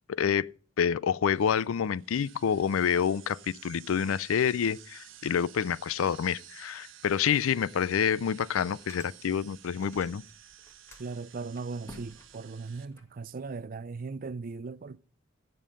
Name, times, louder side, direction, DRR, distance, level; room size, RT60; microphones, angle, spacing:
voice 1, 0.1-0.5 0.8-10.2, left 7 dB, 85° left, 0.4 m, -28 dB
sound 1, 1.3-12.8, right 11 dB, 65° right, 1.1 m, -53 dB
sound 2, 7.4-7.5 7.9-8.0 8.5-10.3 10.6-13.0, left 1 dB, 15° left, 2.0 m, -52 dB
voice 2, 11.0-15.0, right 4 dB, 45° right, 0.4 m, -38 dB
16.0 x 5.4 x 5.4 m
head